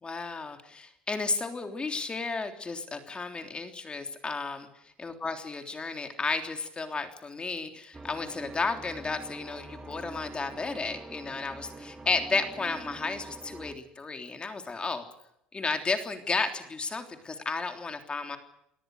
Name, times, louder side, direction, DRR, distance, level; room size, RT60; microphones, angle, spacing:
voice 1, 0.0-4.7 5.0-15.0 15.5-18.4, left 4 dB, 25° left, 6 dB, 3.4 m, -33 dB
sound 1, 7.9-13.7, right 2 dB, 20° right, 2.2 m, -45 dB
28.5 x 18.0 x 6.6 m, 0.79 s
supercardioid pair, 85°, 4 cm